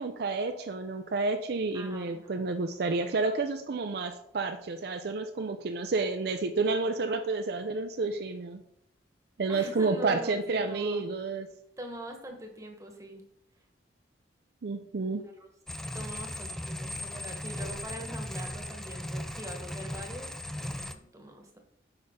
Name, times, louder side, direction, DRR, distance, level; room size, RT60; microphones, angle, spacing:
voice 1, 0.0-8.6 9.4-11.5 14.6-15.2, right 3 dB, 60° right, 7 dB, 0.5 m, -30 dB
voice 2, 1.7-2.3 9.5-11.0 11.8-13.2 15.4-15.5 15.9-21.6, right 1 dB, 15° right, 3 dB, 1.2 m, -43 dB
sound 1, 15.7-20.9, left 1 dB, ahead, 0.3 m, -37 dB
7.9 x 5.4 x 3.7 m, 0.76 s
head